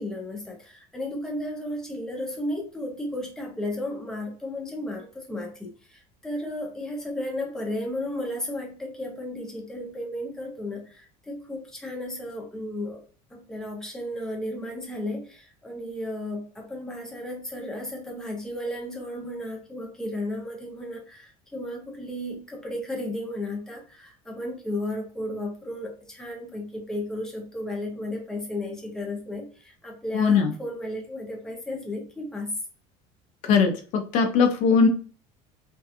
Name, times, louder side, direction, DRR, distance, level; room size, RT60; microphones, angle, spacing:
voice 1, 0.0-13.0 13.3-32.5, left 1 dB, 5° left, -1 dB, 0.5 m, -34 dB
voice 2, 30.1-30.5 33.4-34.9, left 5 dB, 55° left, 5 dB, 0.4 m, -20 dB
2.7 x 2.2 x 2.3 m, 0.39 s
cardioid pair, 160°, 15 cm